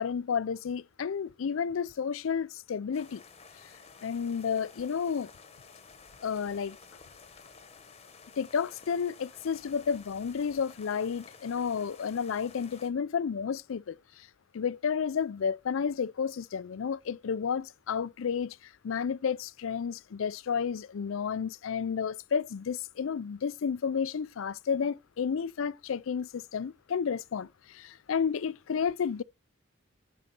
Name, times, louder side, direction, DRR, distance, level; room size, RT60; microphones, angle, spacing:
voice 1, 0.0-3.2 4.0-5.3 6.2-6.8 8.4-14.3 14.5-29.2, left 6 dB, 75° left, 0.4 m, -31 dB
sound 1, 2.9-12.9, left 5 dB, 30° left, 1.1 m, -53 dB
9.2 x 4.1 x 5.8 m
head